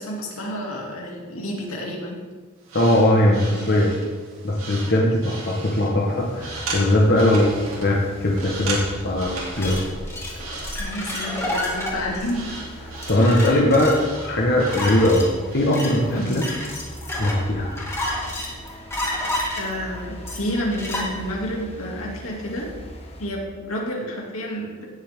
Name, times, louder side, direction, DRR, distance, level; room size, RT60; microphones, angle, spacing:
voice 1, 0.0-2.2 10.7-12.6 13.2-13.7 16.1-16.3 19.0-22.7 23.2-24.9, equal, 80° left, -2 dB, 2.6 m, -30 dB
sound 1, 2.6-16.5, right 3 dB, 85° right, 3.0 m, -37 dB
voice 2, 2.7-3.9 4.4-7.5 7.8-9.8 13.1-14.0 14.2-15.2 15.5-16.4 17.1-17.7, left 1 dB, 50° left, -3 dB, 1.4 m, -20 dB
sound 2, 6.2-23.3, equal, 30° left, 1.6 m, -39 dB
sound 3, 9.6-21.0, left 1 dB, 10° left, 2.3 m, -30 dB
17.5 x 7.5 x 3.7 m, 1.5 s
head